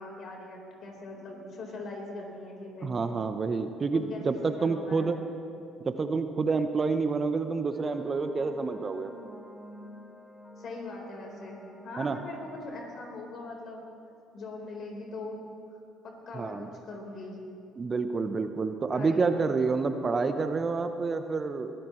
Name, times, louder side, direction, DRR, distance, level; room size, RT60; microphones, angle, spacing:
voice 1, 0.0-2.9 3.9-5.1 10.6-13.8 14.3-15.4 16.3-17.4 18.9-19.2, left 2 dB, 55° left, 0 dB, 4.3 m, -41 dB
voice 2, 2.8-5.2 5.9-9.1 12.0-12.2 16.3-16.7 17.8-21.7, right 4 dB, 35° right, 9 dB, 0.9 m, -28 dB
sound 1, 7.7-12.7, equal, 15° left, 3.7 m, -50 dB
22.5 x 15.0 x 3.2 m, 2.6 s
hypercardioid pair, 55°, 0 cm